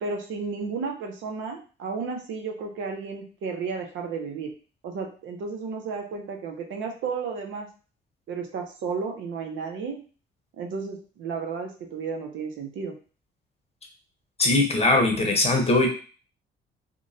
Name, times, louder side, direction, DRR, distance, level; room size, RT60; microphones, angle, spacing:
voice 1, 0.0-4.5 4.8-7.7 8.3-10.0 10.6-12.9, right 5 dB, 75° right, 2 dB, 0.7 m, -33 dB
voice 2, 14.4-15.9, left 2 dB, 30° left, 2 dB, 0.8 m, -20 dB
2.9 x 2.2 x 2.6 m, 0.37 s
cardioid pair, 90°, 20 cm